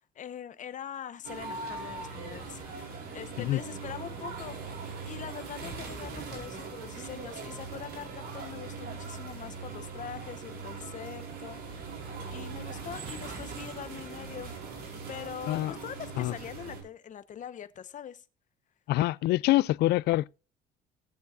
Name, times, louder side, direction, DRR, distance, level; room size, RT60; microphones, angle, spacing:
voice 1, 0.0-12.0 12.3-14.5 15.1-18.2, left 9 dB, 50° left, 1.0 m, -43 dB
sound 1, 1.2-16.8, right 4 dB, 65° right, 4.6 m, -40 dB
voice 2, 18.9-20.3, left 16 dB, 75° left, 0.4 m, -25 dB
18.5 x 7.0 x 2.5 m
cardioid pair, 110°, 17 cm